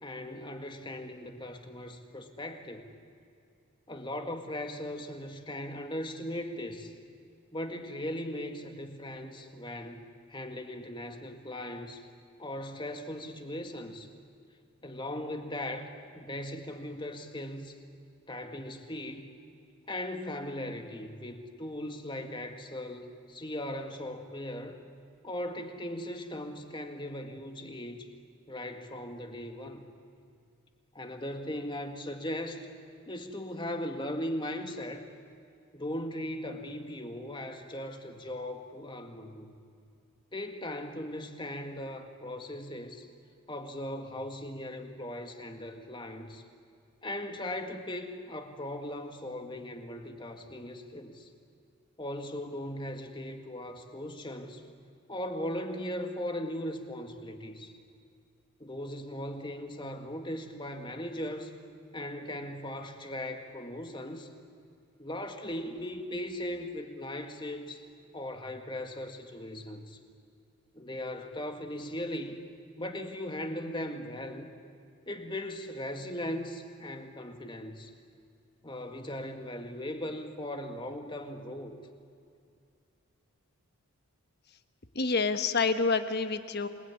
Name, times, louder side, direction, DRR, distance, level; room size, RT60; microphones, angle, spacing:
voice 1, 0.0-2.9 3.9-6.9 7.5-12.0 12.4-14.1 14.8-15.9 16.1-17.8 18.3-19.3 19.9-24.8 25.2-28.1 28.5-29.8 30.9-32.7 33.1-35.1 35.7-39.5 40.3-43.0 43.5-46.4 47.0-51.3 52.0-54.6 55.1-57.7 58.6-61.5 61.9-64.3 65.0-67.8 68.1-70.0 70.7-72.4 72.8-74.5 75.1-77.9 78.6-81.7, left 1 dB, 20° left, 5 dB, 1.9 m, -38 dB
voice 2, 84.9-86.7, left 4 dB, 45° left, 9 dB, 1.3 m, -27 dB
28.0 x 20.0 x 9.7 m, 2.4 s
head